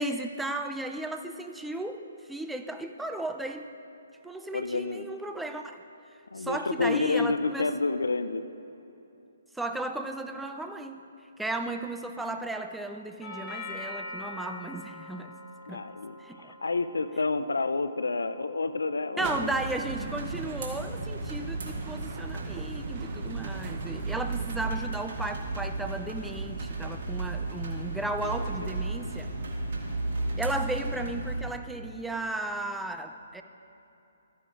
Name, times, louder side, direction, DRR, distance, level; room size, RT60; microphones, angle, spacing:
voice 1, 0.0-3.7 4.2-5.8 6.4-7.7 9.6-11.0 11.4-15.4 15.7-15.8 16.2-16.5 19.2-29.3 30.4-33.4, right 2 dB, 5° right, 6 dB, 0.4 m, -35 dB
voice 2, 4.5-5.1 6.3-8.5 15.7-19.5 27.4-27.8 28.2-28.3 28.6-29.1, left 3 dB, 80° left, 12 dB, 0.4 m, -30 dB
Doorbell, 13.2-21.3, left 2 dB, 20° left, 1.8 m, -45 dB
sound 1, 19.2-24.8, right 5 dB, 35° right, 0.8 m, -41 dB
sound 2, 19.2-31.4, right 3 dB, 60° right, 1.9 m, -34 dB
14.0 x 9.5 x 2.5 m, 2.9 s
figure-of-eight pair, 135°, 0 cm